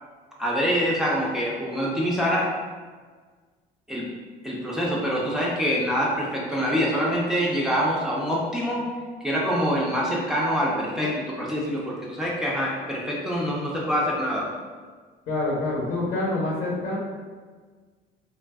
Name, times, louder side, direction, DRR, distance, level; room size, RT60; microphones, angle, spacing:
voice 1, 0.4-2.5 3.9-4.1 4.4-8.8 9.2-14.5, equal, 5° right, -5 dB, 0.5 m, -25 dB
voice 2, 15.3-17.0, left 2 dB, 60° left, -6 dB, 0.8 m, -26 dB
3.3 x 2.4 x 2.3 m, 1.5 s
cardioid pair, 110°, 17 cm